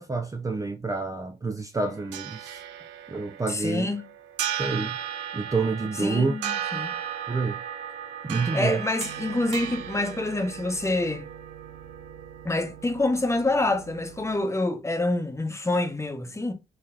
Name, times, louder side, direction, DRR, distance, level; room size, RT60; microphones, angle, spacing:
voice 1, 0.0-2.6 3.1-3.9 4.6-5.0 5.3-6.3 7.3-7.6 8.2-8.8, right 3 dB, 20° right, 0.5 m, -28 dB
sound 1, 1.8-14.4, right 9 dB, 80° right, 0.5 m, -36 dB
voice 2, 3.5-4.1 6.0-7.0 8.5-11.2 12.4-16.5, left 2 dB, 15° left, 1.0 m, -27 dB
3.9 x 3.2 x 2.7 m
supercardioid pair, 55°, 18 cm